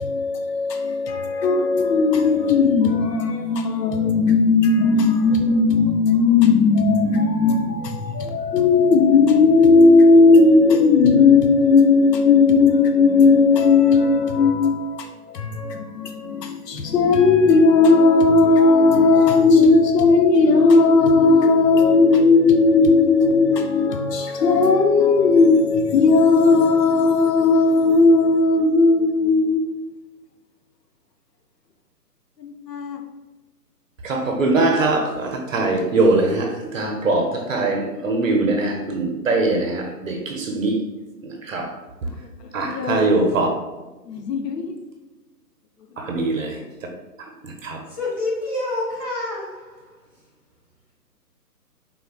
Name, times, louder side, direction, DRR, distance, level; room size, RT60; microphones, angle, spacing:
voice 1, 0.0-29.9 32.4-33.0 42.6-43.6 44.1-44.7 46.1-46.3, left 4 dB, 80° left, 0.6 m, -16 dB
voice 2, 34.0-36.5 36.7-40.1 40.5-40.7 41.5-41.6 42.5-43.5 46.1-46.5 47.6-47.8, right 2 dB, 55° right, 0.5 m, -21 dB
voice 3, 48.0-49.7, left 2 dB, 25° left, 1.1 m, -27 dB
3.6 x 2.1 x 2.2 m
figure-of-eight pair, 140°, 48 cm